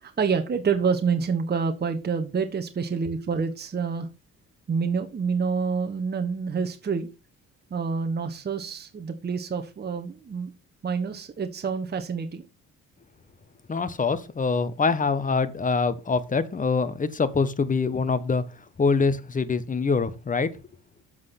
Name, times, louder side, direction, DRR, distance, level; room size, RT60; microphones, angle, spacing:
voice 1, 0.0-4.1 4.7-7.1 7.7-10.5 10.8-12.4, right 5 dB, 35° right, 1.2 m, -27 dB
voice 2, 13.7-18.4 18.8-20.5, left 4 dB, 25° left, 1.1 m, -24 dB
7.5 x 6.1 x 5.8 m
cardioid pair, 90°, 30 cm